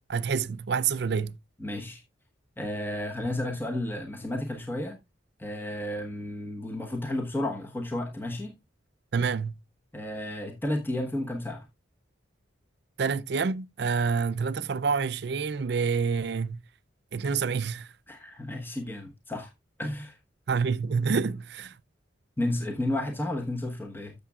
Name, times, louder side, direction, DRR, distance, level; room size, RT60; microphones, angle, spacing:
voice 1, 0.0-1.4 9.1-9.6 13.0-16.6 17.1-17.9 20.5-21.7, right 5 dB, 55° right, 0.5 m, -27 dB
voice 2, 1.6-2.0 2.6-5.0 5.4-8.5 9.9-11.6 18.1-19.5 19.8-20.2 22.4-24.1, left 1 dB, 10° left, 1.1 m, -32 dB
13.5 x 6.8 x 2.4 m
head